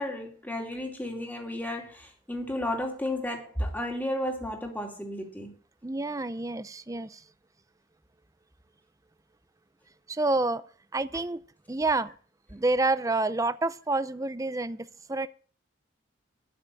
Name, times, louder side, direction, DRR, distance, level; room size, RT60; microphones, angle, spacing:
voice 1, 0.0-5.5, left 1 dB, 10° left, 2.6 m, -33 dB
voice 2, 5.8-7.2 10.1-10.6 10.9-11.4 11.7-12.1 12.5-15.3, right 2 dB, 15° right, 0.5 m, -28 dB
12.5 x 5.9 x 9.0 m
head